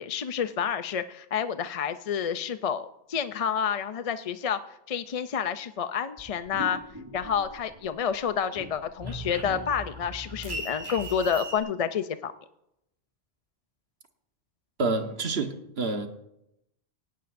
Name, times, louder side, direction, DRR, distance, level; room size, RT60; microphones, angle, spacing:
voice 1, 0.0-4.6 4.9-6.8 7.1-12.3, left 7 dB, 50° left, 11 dB, 0.4 m, -29 dB
sound 1, 6.2-7.9 8.2-11.6, right 1 dB, 20° right, 1.7 m, -39 dB
voice 2, 14.8-16.1, right 3 dB, 70° right, 6 dB, 1.4 m, -28 dB
18.0 x 17.5 x 2.6 m, 0.83 s
omnidirectional pair, 1.1 m